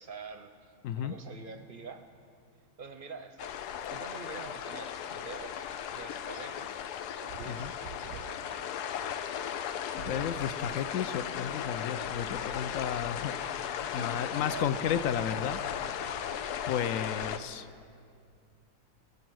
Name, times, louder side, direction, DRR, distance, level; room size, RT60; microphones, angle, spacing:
voice 1, 0.0-2.1 2.8-6.9 7.2-9.0 13.8-14.7 17.1-17.6, right 5 dB, 50° right, 8 dB, 0.6 m, -47 dB
voice 2, 0.8-1.1 7.5-7.7 10.0-13.4 13.9-15.6 16.7-17.6, left 8 dB, 70° left, 12 dB, 0.9 m, -33 dB
sound 1, 3.4-17.4, left 9 dB, 90° left, 1.2 m, -36 dB
sound 2, 7.3-8.4 9.4-9.5 9.7-10.9 11.8-12.6, right 10 dB, 70° right, 0.9 m, -47 dB
22.5 x 9.0 x 6.2 m, 2.3 s
omnidirectional pair, 1.7 m